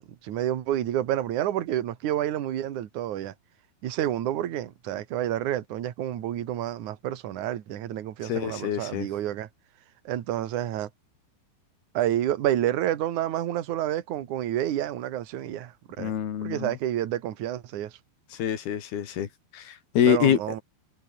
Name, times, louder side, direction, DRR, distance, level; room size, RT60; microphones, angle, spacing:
voice 1, 0.0-3.3 3.8-9.5 10.0-10.9 11.9-16.1 16.4-18.0 20.0-20.6, right 12 dB, 55° right, 2.5 m, -29 dB
voice 2, 8.3-9.1 16.0-16.7 18.4-19.3 19.5-20.4, left 9 dB, 60° left, 4.2 m, -25 dB
omnidirectional pair, 5.3 m